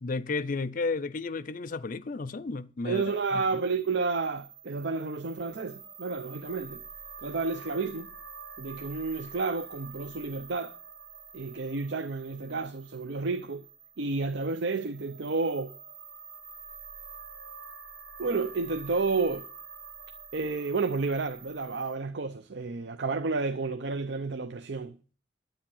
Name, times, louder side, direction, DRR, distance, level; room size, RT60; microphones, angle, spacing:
voice 1, 0.0-3.0 3.3-3.4, left 3 dB, 45° left, 0.5 m, -32 dB
voice 2, 2.8-6.8 7.2-8.1 8.6-10.7 11.3-13.6 14.0-15.7 18.2-19.5 20.3-25.0, right 4 dB, 65° right, 0.7 m, -31 dB
sound 1, 2.9-22.0, right 6 dB, 90° right, 3.8 m, -47 dB
10.0 x 8.8 x 7.1 m
head